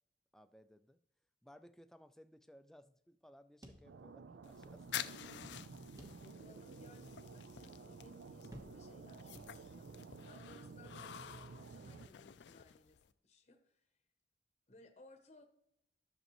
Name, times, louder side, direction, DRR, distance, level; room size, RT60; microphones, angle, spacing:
voice 1, 0.3-1.0 1.4-5.3, equal, 5° left, 11 dB, 0.3 m, -61 dB
sound 1, 3.6-4.5 4.8-4.9 6.0-6.6 7.1-7.2 8.5-9.1 9.4-10.0, right 1 dB, 20° right, 1.0 m, -57 dB
sound 2, 3.8-12.1, right 4 dB, 80° right, 0.4 m, -53 dB
sound 3, 4.4-13.1, left 10 dB, 75° left, 0.4 m, -50 dB
voice 2, 6.2-13.9 14.7-15.4, left 2 dB, 35° left, 5 dB, 0.8 m, -62 dB
11.0 x 6.5 x 3.0 m, 0.77 s
head